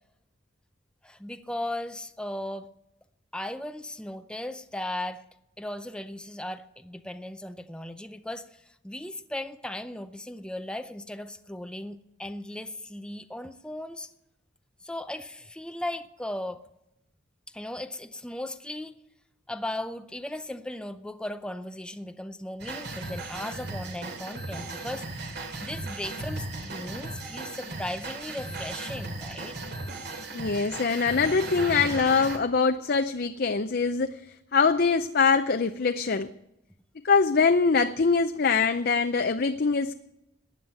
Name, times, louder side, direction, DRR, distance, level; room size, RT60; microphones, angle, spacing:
voice 1, 1.0-2.7 3.3-5.2 5.6-14.1 14.8-16.6 17.5-19.0 19.5-25.1 25.6-29.6, left 1 dB, 5° left, 0.5 m, -37 dB
sound 1, 22.6-32.4, right 2 dB, 55° right, 2.5 m, -36 dB
voice 2, 30.3-34.2 34.5-36.3 37.0-39.9, left 5 dB, 50° left, 0.6 m, -23 dB
15.0 x 9.9 x 7.7 m
head